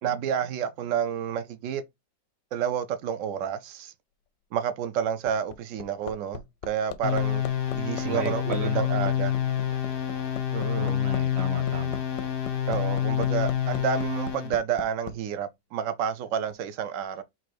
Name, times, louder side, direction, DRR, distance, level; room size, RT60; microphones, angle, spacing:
voice 1, 0.0-1.8 2.5-3.9 4.5-7.4 7.7-9.3 10.5-11.0 12.7-17.2, right 8 dB, 80° right, 0.7 m, -30 dB
Hammer, 5.0-15.2 16.5-16.6, left 9 dB, 90° left, 1.3 m, -39 dB
sound 1, 7.0-14.6, left 10 dB, 50° left, 0.7 m, -27 dB
voice 2, 8.0-8.8 10.8-12.0, right 4 dB, 50° right, 0.9 m, -34 dB
4.4 x 2.6 x 4.6 m
omnidirectional pair, 1.9 m